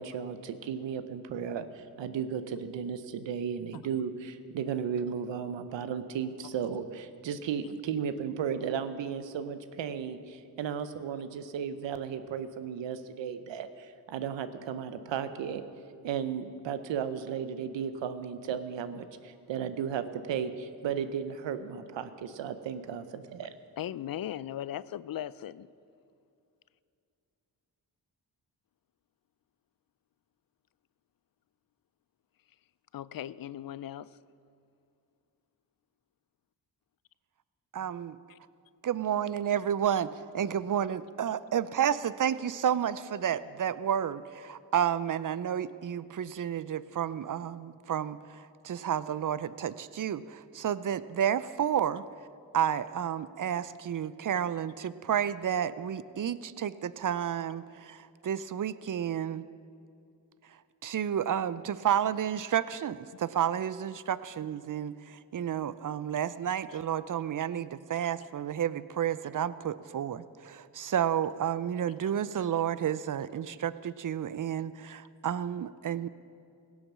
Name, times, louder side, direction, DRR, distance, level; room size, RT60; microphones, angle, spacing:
voice 1, 0.0-15.6 16.0-23.5, right 7 dB, 90° right, 11 dB, 0.7 m, -35 dB
voice 2, 23.8-25.7 32.9-34.2 38.3-38.4, left 11 dB, 55° left, 19 dB, 0.5 m, -38 dB
voice 3, 37.7-38.2 38.8-52.0 52.5-59.4 60.8-76.1, right 9 dB, 45° right, 16 dB, 0.6 m, -31 dB
17.0 x 7.2 x 6.1 m, 2.5 s
supercardioid pair, 40°, 43 cm